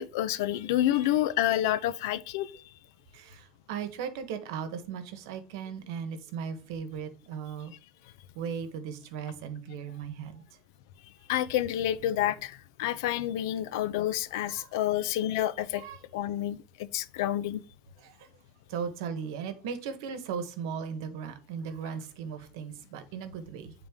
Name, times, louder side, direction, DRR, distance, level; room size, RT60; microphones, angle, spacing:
voice 1, 0.0-2.6 11.3-15.8 16.1-17.6, left 12 dB, 75° left, 0.4 m, -29 dB
voice 2, 3.1-7.7 8.3-10.4 14.4-14.7 15.8-16.0 18.0-18.3 18.7-23.7, right 7 dB, 75° right, 1.0 m, -37 dB
8.8 x 3.7 x 3.5 m
cardioid pair, 175°, 2 cm